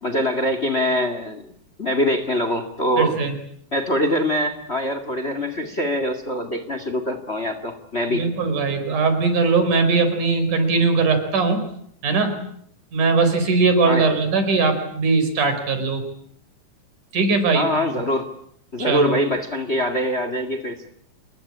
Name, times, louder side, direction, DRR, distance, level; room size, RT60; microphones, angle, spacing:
voice 1, 0.0-1.5 1.8-3.2 3.7-8.3 13.9-14.2 17.5-18.3 18.7-20.9, left 1 dB, 25° left, 9 dB, 2.0 m, -23 dB
voice 2, 3.0-3.3 8.1-11.6 12.0-12.4 12.9-16.0 17.1-17.6 18.8-19.1, right 4 dB, 80° right, 8 dB, 6.1 m, -20 dB
27.0 x 21.0 x 8.7 m, 0.68 s
omnidirectional pair, 3.5 m